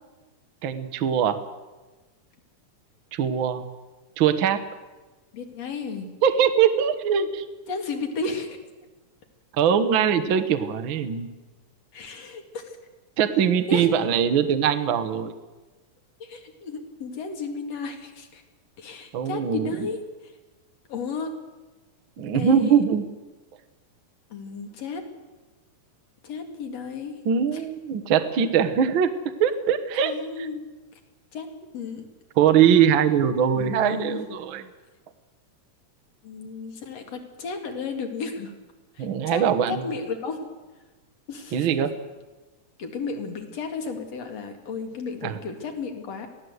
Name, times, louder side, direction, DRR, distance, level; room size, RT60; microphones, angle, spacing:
voice 1, 0.6-1.4 3.1-3.6 4.2-4.6 6.2-7.5 9.6-11.3 13.2-15.3 19.1-19.9 22.2-23.0 27.2-29.1 29.4-30.1 30.4-30.5 32.4-34.6 39.0-39.8 41.5-41.9 45.2-45.4, right 8 dB, 55° right, 8 dB, 1.5 m, -22 dB
voice 2, 5.3-6.2 7.7-8.6 11.9-12.8 13.7-13.9 16.2-18.4 18.8-20.0 20.9-21.4 22.3-22.8 24.3-25.1 26.2-27.2 27.5-27.6 30.0-30.7 31.3-32.1 33.5-34.2 36.2-38.5 38.9-40.4 41.3-41.7 42.8-46.3, left 4 dB, 55° left, 5 dB, 3.3 m, -33 dB
23.5 x 16.0 x 8.1 m, 1.2 s
omnidirectional pair, 3.6 m